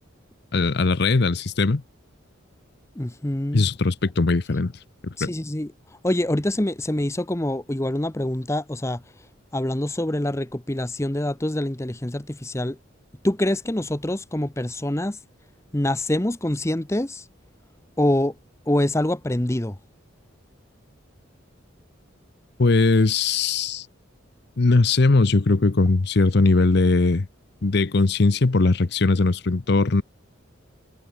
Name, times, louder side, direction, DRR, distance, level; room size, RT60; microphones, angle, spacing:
voice 1, 0.5-1.8 3.5-4.7 5.0-5.3 22.6-23.9 24.6-27.3 27.6-30.0, left 3 dB, 55° left, 0.7 m, -20 dB
voice 2, 3.0-3.7 5.2-5.7 6.0-9.0 9.5-12.8 13.2-15.2 15.7-17.2 18.0-18.3 18.7-19.8, left 1 dB, 15° left, 0.8 m, -25 dB
head